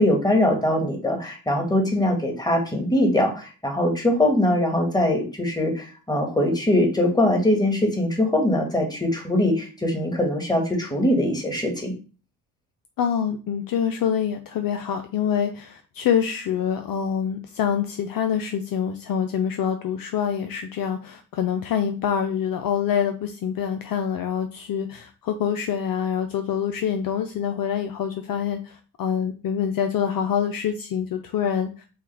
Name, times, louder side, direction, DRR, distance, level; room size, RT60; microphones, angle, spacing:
voice 1, 0.0-11.9, left 1 dB, 10° left, 1 dB, 1.8 m, -22 dB
voice 2, 13.0-31.7, left 8 dB, 55° left, 7 dB, 0.6 m, -26 dB
5.5 x 2.3 x 3.4 m, 0.35 s
supercardioid pair, 60°, 42 cm